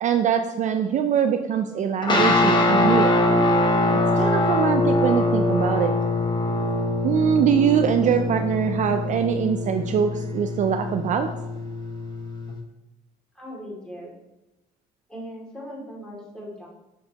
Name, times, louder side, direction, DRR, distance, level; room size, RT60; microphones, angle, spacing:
voice 1, 0.0-3.2 4.2-5.9 7.0-11.3, right 8 dB, 45° right, 7 dB, 0.4 m, -23 dB
sound 1, 2.0-12.5, left 2 dB, 25° left, 1.0 m, -23 dB
voice 2, 13.3-14.2 15.1-16.7, equal, 5° left, -5 dB, 2.4 m, -39 dB
6.4 x 6.4 x 2.9 m, 0.98 s
cardioid pair, 110°, 17 cm